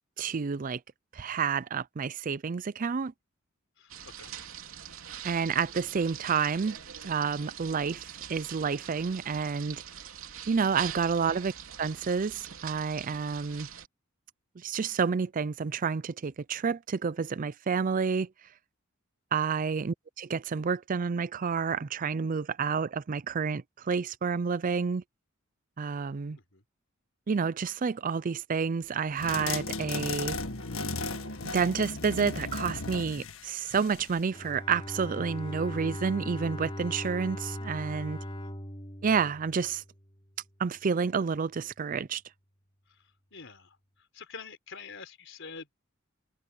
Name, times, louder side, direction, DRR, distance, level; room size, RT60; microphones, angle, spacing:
voice 1, 0.2-0.8 1.1-3.1 5.2-6.8 7.0-9.8 10.5-11.5 11.8-13.7 14.6-18.3 19.3-25.0 25.8-26.4 27.3-30.4 31.5-38.2 39.0-39.8 40.6-42.2, right 5 dB, 40° right, 0.4 m, -29 dB
voice 2, 3.8-4.3 19.6-19.7 26.5-26.6 38.2-38.5 43.3-43.8 44.1-45.9, left 5 dB, 65° left, 4.8 m, -47 dB
sound 1, 3.9-13.9, right 9 dB, 85° right, 3.1 m, -44 dB
sound 2, 29.2-34.2, left 3 dB, 90° left, 1.7 m, -35 dB
Bowed string instrument, 34.3-40.2, left 1 dB, 25° left, 4.6 m, -39 dB
head